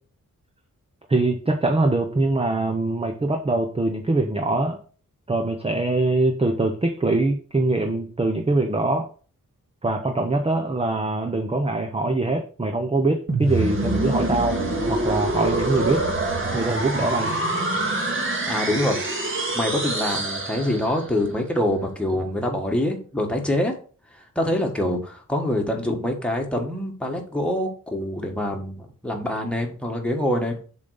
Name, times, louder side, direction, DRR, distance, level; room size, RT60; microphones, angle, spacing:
voice 1, 1.1-4.8 5.3-9.1 9.8-14.6 14.9-16.1 16.5-17.4, right 2 dB, 20° right, 5 dB, 0.7 m, -23 dB
sound 1, 13.3-21.2, right 2 dB, 35° right, 1.9 m, -25 dB
voice 2, 18.5-19.1 19.5-23.7 24.3-30.6, left 1 dB, 5° left, 1 dB, 1.6 m, -25 dB
7.2 x 4.0 x 6.5 m, 0.40 s
wide cardioid pair, 160°, 33 cm